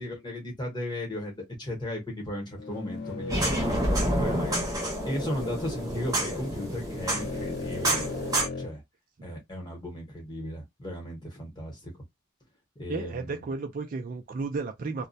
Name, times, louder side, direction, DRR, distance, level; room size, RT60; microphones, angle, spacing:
voice 1, 0.0-4.6 5.0-8.1 8.6-8.8 9.2-11.9 12.8-13.5, left 1 dB, 20° left, 0.9 m, -36 dB
sound 1, 2.5-8.7, left 3 dB, 50° left, 0.4 m, -38 dB
sound 2, 3.3-8.5, right 1 dB, 15° right, 0.8 m, -29 dB
voice 2, 12.9-15.1, right 4 dB, 40° right, 0.3 m, -33 dB
2.3 x 2.1 x 2.6 m
head